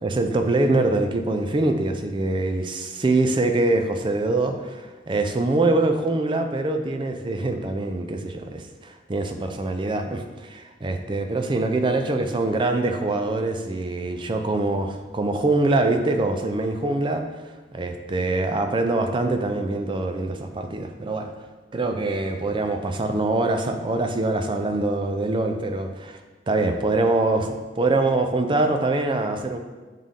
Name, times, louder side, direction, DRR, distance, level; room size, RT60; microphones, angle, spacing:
voice 1, 0.0-17.2 17.7-21.3 21.7-26.2 26.5-29.6, right 2 dB, 25° right, 6 dB, 0.4 m, -24 dB
7.4 x 3.7 x 3.6 m, 1.3 s
head